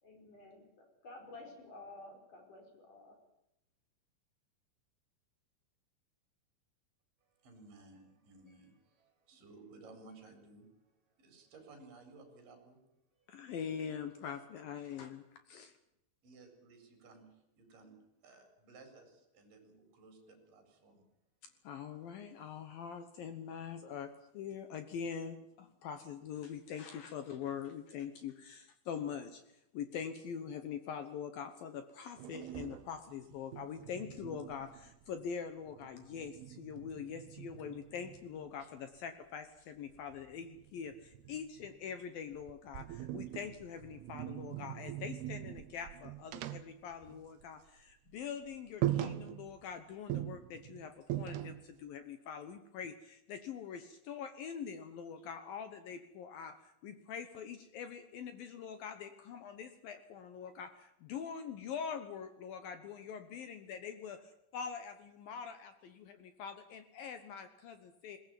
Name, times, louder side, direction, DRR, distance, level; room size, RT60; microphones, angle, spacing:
voice 1, 0.0-3.1, left 2 dB, 40° left, 4 dB, 6.2 m, -52 dB
voice 2, 7.2-12.9 13.2-13.3 16.2-21.0 49.5-49.6, right 3 dB, 45° right, 6 dB, 5.8 m, -58 dB
voice 3, 13.3-15.8 21.6-29.4 29.7-68.2, left 7 dB, 80° left, 9 dB, 2.0 m, -44 dB
sound 1, 32.2-35.3 35.6-38.6 39.9-41.9 42.3-47.7 47.9-48.1 48.5-48.6 48.8-49.7 50.1-51.8, right 13 dB, 75° right, 2.4 m, -42 dB
21.0 x 18.5 x 9.2 m, 0.81 s
omnidirectional pair, 5.9 m